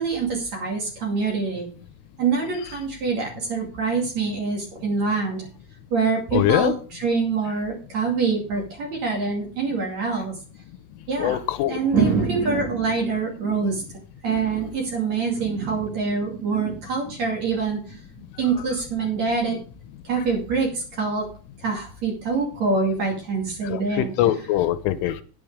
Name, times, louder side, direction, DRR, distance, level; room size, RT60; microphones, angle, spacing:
voice 1, 0.0-1.7 2.2-5.5 5.9-10.3 11.1-13.9 14.2-19.6 20.0-21.3 21.6-24.1, right 4 dB, 45° right, 0 dB, 3.0 m, -25 dB
voice 2, 6.3-6.7 11.2-11.7 23.7-25.2, left 13 dB, 85° left, 13 dB, 3.2 m, -22 dB
9.9 x 9.2 x 4.9 m, 0.38 s
omnidirectional pair, 5.7 m